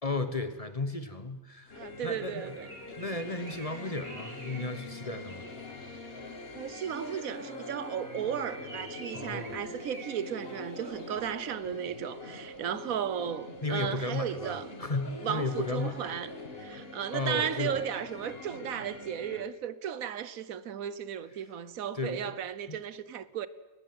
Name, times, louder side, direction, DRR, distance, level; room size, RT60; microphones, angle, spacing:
voice 1, 0.0-2.5 3.0-5.5 9.1-9.6 13.6-16.0 17.1-17.8 21.9-22.3 22.7-22.8, left 2 dB, 25° left, 1.2 m, -34 dB
sound 1, 1.7-18.6, left 1 dB, 80° left, 3.1 m, -49 dB
sound 2, 1.7-19.4, left 2 dB, 45° left, 1.9 m, -45 dB
voice 2, 1.7-2.7 6.5-14.7 15.2-16.3 16.6-23.5, right 9 dB, 80° right, 1.3 m, -35 dB
Bird, 2.2-6.3 7.9-11.4, right 3 dB, 50° right, 2.6 m, -50 dB
22.0 x 19.0 x 7.8 m
omnidirectional pair, 1.4 m